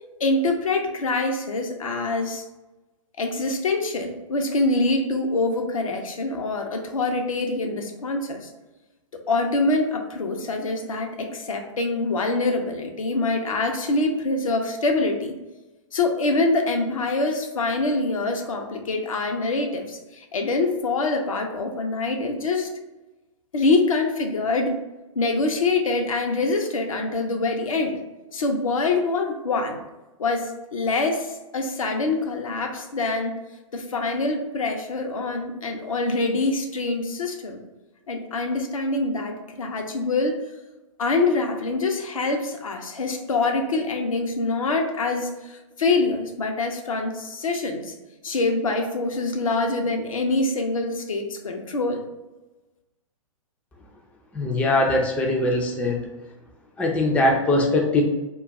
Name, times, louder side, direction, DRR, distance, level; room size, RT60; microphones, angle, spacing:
voice 1, 0.2-2.4 3.2-8.5 9.3-15.4 15.9-22.7 23.5-24.8 25.2-28.0 28.3-29.8 30.2-33.4 33.7-37.6 38.1-40.4 41.0-47.9 48.2-52.0, left 3 dB, 80° left, 3 dB, 0.5 m, -25 dB
voice 2, 54.3-56.0 56.8-58.0, left 2 dB, 5° left, 0 dB, 0.3 m, -21 dB
2.3 x 2.2 x 3.9 m, 1.1 s
figure-of-eight pair, 115°, 17 cm